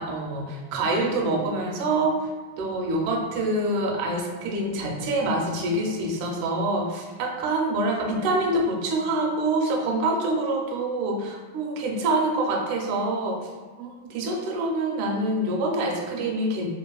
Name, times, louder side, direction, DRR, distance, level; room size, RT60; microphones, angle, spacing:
voice 1, 0.0-2.3 2.6-13.5 13.8-16.7, right 2 dB, 85° right, 0 dB, 2.0 m, -26 dB
4.7 x 2.4 x 2.2 m, 1.3 s
omnidirectional pair, 3.5 m